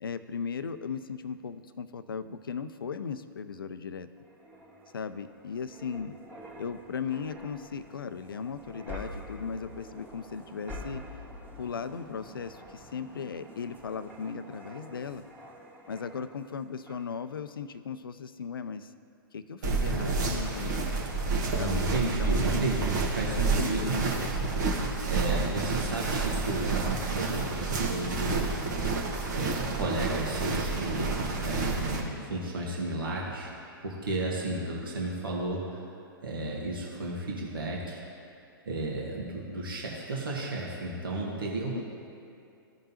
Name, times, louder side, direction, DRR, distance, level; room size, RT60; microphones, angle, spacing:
voice 1, 0.0-4.1 4.9-6.1 6.6-11.0 11.6-15.2 15.9-18.9 19.3-20.9 21.5-22.7 23.4-24.5 41.7-41.8, left 6 dB, 65° left, 12 dB, 0.5 m, -37 dB
sound 1, 4.2-16.5 16.9-17.1, equal, 15° right, 1.5 m, -47 dB
sound 2, 19.6-32.0, right 3 dB, 50° right, 1.4 m, -29 dB
voice 2, 21.5-24.0 25.1-28.9 29.3-33.5 33.8-35.8 36.2-38.0 38.6-41.8, right 2 dB, 65° right, -3 dB, 1.7 m, -33 dB
15.5 x 5.3 x 2.8 m, 2.6 s
figure-of-eight pair, 110°, 12 cm